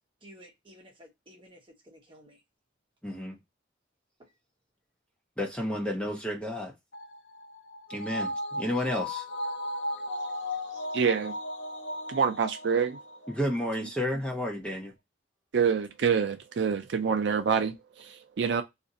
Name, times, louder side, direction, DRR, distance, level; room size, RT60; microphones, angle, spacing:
voice 1, 0.2-2.4 4.2-4.3, equal, 25° right, 1.0 m, -53 dB
voice 2, 3.0-3.4 5.4-6.8 7.9-9.3 13.3-15.0, left 1 dB, 5° left, 0.6 m, -31 dB
sound 1, 6.9-13.6 13.9-14.0, left 1 dB, 60° left, 0.6 m, -36 dB
voice 3, 10.9-11.3 12.1-13.0 15.5-18.6, right 6 dB, 60° right, 0.4 m, -26 dB
2.5 x 2.5 x 3.9 m
head